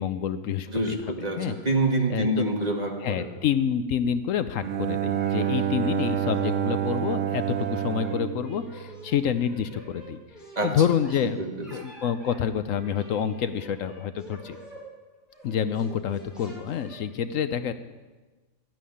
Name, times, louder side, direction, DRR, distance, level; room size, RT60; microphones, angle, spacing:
voice 1, 0.0-1.0 1.4-1.5 2.1-2.5 3.0-10.2 10.6-11.4 11.7-14.6 15.4-17.7, left 8 dB, 70° left, 12 dB, 1.0 m, -27 dB
voice 2, 0.7-3.3 10.6-10.7 11.4-11.7, right 2 dB, 30° right, 1 dB, 2.0 m, -26 dB
Bowed string instrument, 4.6-9.5, right 10 dB, 65° right, 1.0 m, -28 dB
sound 1, 5.1-6.5 6.8-7.0 7.3-11.2 11.6-12.4 12.7-14.8 15.3-17.0, right 1 dB, ahead, 5.8 m, -46 dB
12.5 x 9.3 x 9.9 m, 1.3 s
omnidirectional pair, 1.4 m